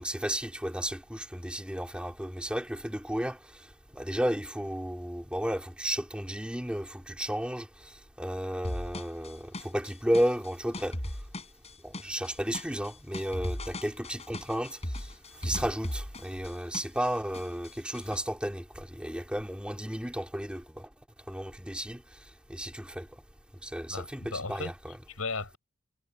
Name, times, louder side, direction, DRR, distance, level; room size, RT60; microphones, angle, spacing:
voice 1, 0.0-3.4 3.9-7.7 8.2-11.0 11.8-15.1 15.4-20.9 21.3-22.0 22.5-23.1 23.6-24.9, equal, 5° right, 3.3 m, -33 dB
sound 1, 8.6-17.1 17.3-18.2, left 1 dB, 30° left, 7.1 m, -38 dB
voice 2, 23.9-24.7 25.1-25.6, left 3 dB, 75° left, 5.1 m, -36 dB
head